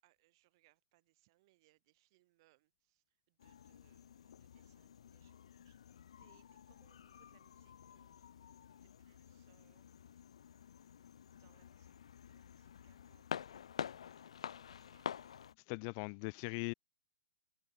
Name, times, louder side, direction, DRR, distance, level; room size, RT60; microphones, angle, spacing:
voice 1, 0.0-8.3 8.8-10.4 11.4-12.0 12.2-15.3, right 21 dB, 40° right, 6.8 m, -75 dB
sound 1, 3.4-15.5, left 8 dB, 55° left, 1.7 m, -49 dB
voice 2, 15.7-16.7, left 39 dB, 30° left, 0.5 m, -40 dB
open air
figure-of-eight pair, 115°, 4 cm